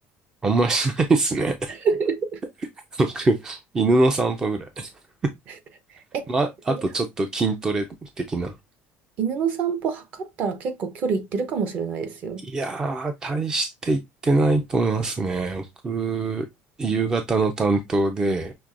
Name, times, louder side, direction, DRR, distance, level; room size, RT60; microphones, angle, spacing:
voice 1, 0.4-1.8 2.9-4.9 6.3-8.5 12.4-16.5 16.8-18.5, right 3 dB, 15° right, 0.4 m, -23 dB
voice 2, 1.7-2.4 5.5-5.6 5.9-6.3 6.7-6.8 9.2-12.4, right 5 dB, 40° right, 0.8 m, -27 dB
6.0 x 3.2 x 2.5 m
cardioid pair, 165°, 4 cm